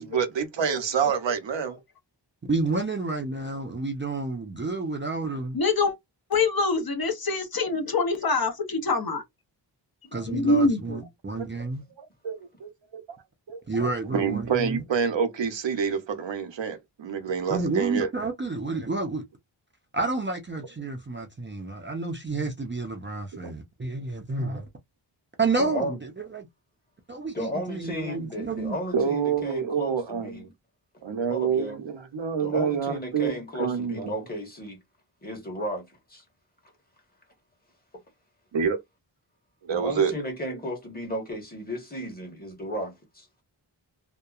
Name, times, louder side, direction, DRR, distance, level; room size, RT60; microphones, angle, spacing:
voice 1, 0.0-1.8 11.6-11.7 12.0-13.2 13.5-13.6 14.1-18.1 23.4-23.5 28.9-30.5 31.0-34.1 38.5-38.8 39.6-40.1, right 6 dB, 75° right, 0.7 m, -27 dB
voice 2, 2.5-5.6 10.1-11.8 13.7-14.8 17.5-19.2 19.9-24.7 25.4-26.5 27.1-28.8, right 3 dB, 25° right, 0.5 m, -30 dB
voice 3, 5.5-6.0 6.3-9.2 10.3-11.0, left 3 dB, 50° left, 0.8 m, -24 dB
voice 4, 25.6-26.0 27.3-30.4 31.3-31.8 32.4-34.8 35.2-36.2 39.7-43.3, equal, 20° left, 1.2 m, -34 dB
2.7 x 2.1 x 2.4 m
wide cardioid pair, 90°, 45 cm